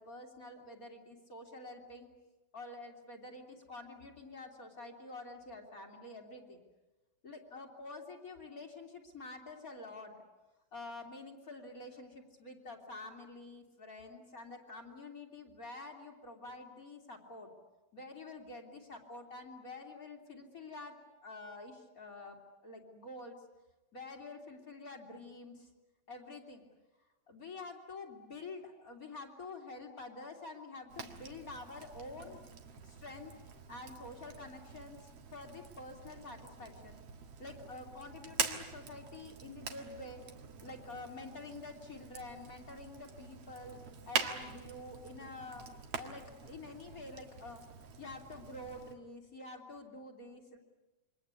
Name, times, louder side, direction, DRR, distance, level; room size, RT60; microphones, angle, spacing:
voice 1, 0.0-2.1 2.5-6.6 7.2-10.1 10.7-17.5 17.9-21.0 21.2-22.4 22.6-23.3 23.9-25.7 26.1-26.6 27.3-33.3 33.7-37.0 37.4-40.2 40.6-43.8 44.1-45.6 45.9-47.6 48.0-50.6, left 2 dB, 25° left, 1 dB, 3.2 m, -48 dB
Fire, 30.9-48.9, right 6 dB, 50° right, 2.4 m, -44 dB
28.5 x 24.5 x 8.3 m, 1.1 s
omnidirectional pair, 4.1 m